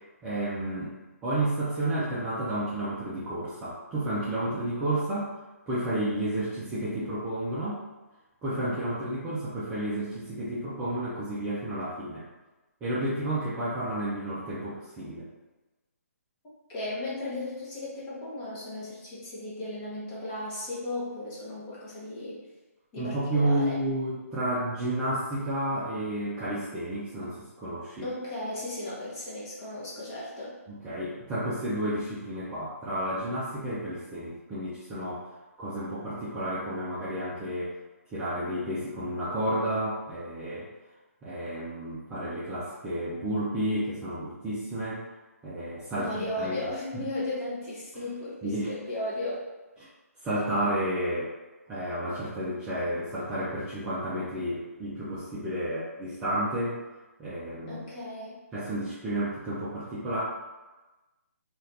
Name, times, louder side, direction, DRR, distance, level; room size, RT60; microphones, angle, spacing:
voice 1, 0.2-0.9 1.2-5.3 5.7-7.8 8.4-12.3 12.8-15.3 23.0-28.1 30.7-35.3 35.6-37.7 38.1-40.7 41.2-45.0 45.4-46.7 46.9-47.0 47.9-48.1 48.4-48.7 49.8-49.9 50.2-51.3 51.7-56.8 57.2-57.8 58.5-60.2, right 1 dB, 10° right, -10 dB, 0.4 m, -31 dB
voice 2, 16.7-22.4 22.9-23.8 28.0-30.5 46.0-49.4 57.7-58.3, left 1 dB, 20° left, -8 dB, 0.9 m, -35 dB
2.7 x 2.4 x 3.2 m, 1.1 s
hypercardioid pair, 160°, 8 cm